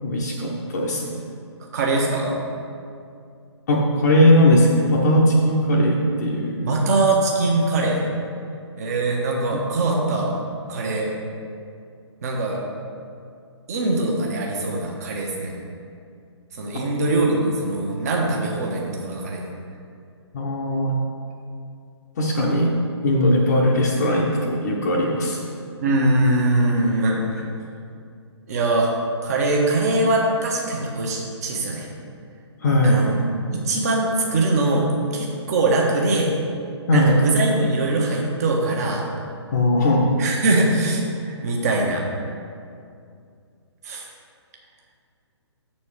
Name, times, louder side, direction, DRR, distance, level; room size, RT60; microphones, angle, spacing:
voice 1, 0.0-1.2 3.7-6.8 20.3-20.9 22.2-22.7 23.0-25.5 32.6-33.1 36.9-37.2 39.5-40.2, left 1 dB, 35° left, -3 dB, 0.8 m, -19 dB
voice 2, 1.6-2.4 6.6-8.0 8.8-10.3 10.7-11.1 12.2-12.6 13.7-15.5 16.6-19.4 25.8-27.4 28.5-28.9 29.2-31.9 32.8-33.2 33.5-34.9 35.1-36.3 36.9-39.0 40.2-42.0 43.8-44.0, right 2 dB, 35° right, -1 dB, 1.1 m, -22 dB
6.8 x 4.3 x 6.6 m, 2.4 s
figure-of-eight pair, 135°, 15 cm